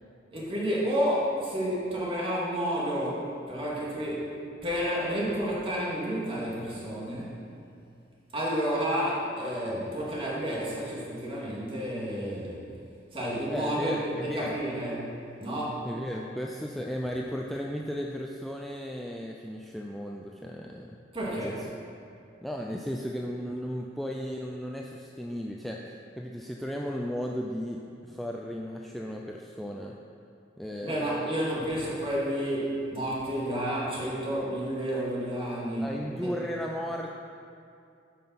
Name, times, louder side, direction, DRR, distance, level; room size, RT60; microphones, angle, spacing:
voice 1, 0.3-4.3 4.6-7.4 8.3-12.6 13.1-15.9 21.1-21.6 30.8-36.3, equal, 30° right, -6 dB, 2.2 m, -30 dB
voice 2, 13.5-14.5 15.8-20.9 21.4-21.7 22.4-29.9 30.6-31.4 35.8-37.1, equal, ahead, -1 dB, 0.4 m, -35 dB
9.2 x 5.7 x 5.8 m, 2.5 s
head